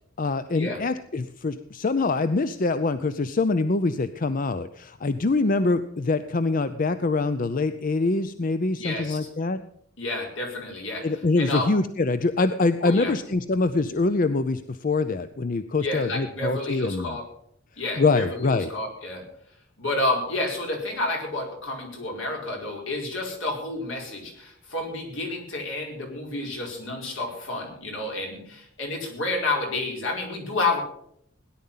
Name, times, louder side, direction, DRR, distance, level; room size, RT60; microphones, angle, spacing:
voice 1, 0.2-9.6 11.0-17.2 18.0-18.7, left 3 dB, 45° left, 12 dB, 0.5 m, -24 dB
voice 2, 8.8-9.3 10.0-11.7 12.8-13.1 15.8-17.3 17.8-19.2 19.8-30.8, left 2 dB, 75° left, 0 dB, 4.8 m, -30 dB
17.5 x 11.0 x 5.7 m, 0.69 s
head